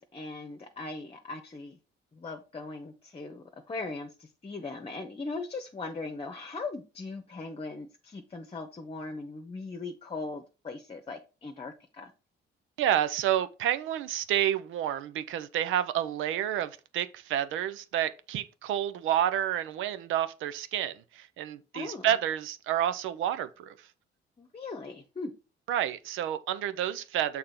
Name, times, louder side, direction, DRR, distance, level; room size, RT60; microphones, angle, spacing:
voice 1, 0.0-1.8 2.1-12.1 21.7-22.1 24.4-25.3, left 3 dB, 30° left, 1.0 m, -39 dB
voice 2, 12.8-23.7 25.7-27.4, right 11 dB, 90° right, 0.7 m, -29 dB
6.7 x 3.7 x 5.7 m
cardioid pair, 90°, 20 cm